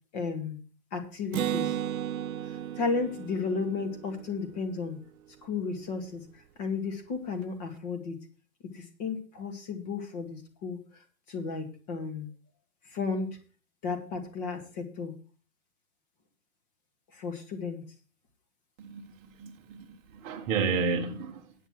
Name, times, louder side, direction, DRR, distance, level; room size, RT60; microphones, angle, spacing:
voice 1, 0.1-0.6 0.9-1.8 2.4-5.0 5.4-8.2 8.7-12.3 12.8-13.4 13.8-15.1 17.1-17.8, left 4 dB, 30° left, 2.1 m, -34 dB
Acoustic guitar, 1.3-5.0, right 10 dB, 80° right, 0.7 m, -34 dB
voice 2, 18.8-21.5, right 5 dB, 20° right, 1.0 m, -32 dB
9.5 x 7.0 x 7.4 m
hypercardioid pair, 165°, 41 cm